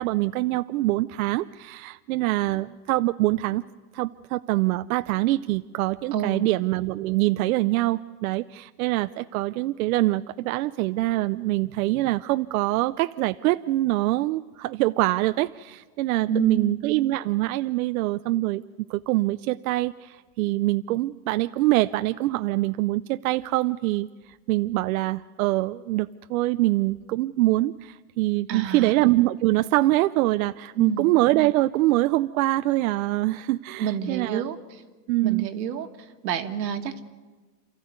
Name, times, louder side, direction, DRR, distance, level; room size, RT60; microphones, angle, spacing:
voice 1, 0.0-3.6 3.9-18.6 18.9-24.1 24.5-34.5 35.1-35.5, right 18 dB, 60° right, 12 dB, 0.6 m, -24 dB
voice 2, 6.1-6.5 16.3-16.7 28.5-28.9 30.8-31.1 33.8-34.6 35.2-35.9 36.2-37.0, right 7 dB, 80° right, 7 dB, 2.0 m, -28 dB
27.5 x 14.0 x 9.4 m, 1.4 s
supercardioid pair, 140°, 50 cm